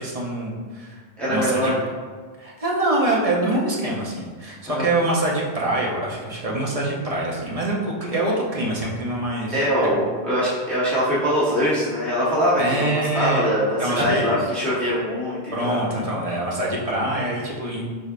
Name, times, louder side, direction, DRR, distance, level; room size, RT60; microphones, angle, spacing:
voice 1, 0.0-1.0 1.3-1.7 2.4-9.6 12.6-13.5 13.8-14.4 15.5-17.8, right 2 dB, 45° right, -3 dB, 0.5 m, -25 dB
voice 2, 1.2-1.8 4.7-4.9 9.5-16.0, equal, ahead, -10 dB, 0.9 m, -23 dB
4.1 x 3.3 x 2.4 m, 1.5 s
omnidirectional pair, 1.2 m